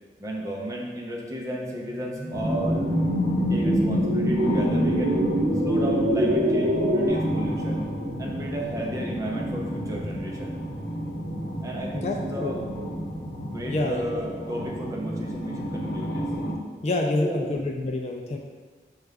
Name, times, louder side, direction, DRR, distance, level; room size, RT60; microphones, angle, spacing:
voice 1, 0.2-2.9 3.5-5.2 5.6-7.8 8.2-10.6 11.6-13.0 13.5-16.2 17.2-17.5, right 1 dB, 20° right, -2 dB, 0.5 m, -33 dB
sound 1, 1.5-7.1, equal, 55° right, 0.8 m, -24 dB
sound 2, 2.3-16.5, equal, 65° left, 0.8 m, -31 dB
voice 2, 13.7-14.0 16.8-18.4, left 2 dB, 40° left, 2 dB, 0.3 m, -27 dB
6.5 x 2.4 x 3.3 m, 1.5 s
head